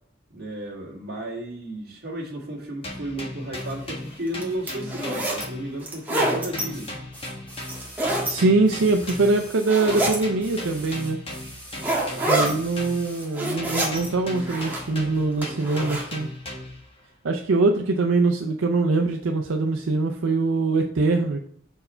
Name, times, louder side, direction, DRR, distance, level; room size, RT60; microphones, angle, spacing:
voice 1, 0.3-6.9 12.1-12.6, right 1 dB, 50° right, -2 dB, 2.0 m, -34 dB
sound 1, 2.8-5.9 6.2-9.5 9.9-13.2 13.6-16.9, left 1 dB, 30° left, 1.4 m, -37 dB
sound 2, 3.5-3.7 4.3-5.4 5.8-6.6 7.6-8.3 8.9-9.3 9.7-10.2 10.8-10.9 11.8-12.5 13.1-14.1 14.4-14.9 15.4-16.0, right 1 dB, 10° right, 1.5 m, -26 dB
sound 3, 6.7-10.1 10.4-13.4 14.3-14.4, equal, 10° left, 2.1 m, -44 dB
voice 2, 8.2-11.2 12.2-16.3 17.2-21.4, right 3 dB, 80° right, 2 dB, 0.5 m, -23 dB
5.5 x 4.6 x 4.3 m, 0.64 s
head